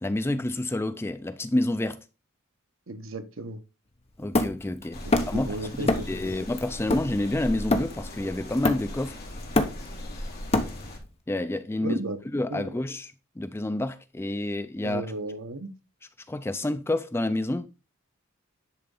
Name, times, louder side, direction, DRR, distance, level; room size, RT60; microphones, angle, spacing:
voice 1, 0.0-2.0 4.2-5.5 5.7-9.2 11.3-12.0 12.3-15.0 16.3-17.7, left 1 dB, 10° left, 0.4 m, -29 dB
voice 2, 2.9-3.6 5.0-6.1 11.8-12.2 12.5-12.7 14.8-15.7, right 2 dB, 70° right, 0.9 m, -34 dB
Hammer, 4.3-5.5 5.9-6.2 6.6-8.2 8.6-9.1 9.4-11.1, left 2 dB, 30° left, 0.9 m, -26 dB
sound 1, 4.9-11.0, left 1 dB, 50° left, 2.6 m, -38 dB
10.5 x 3.9 x 3.7 m
head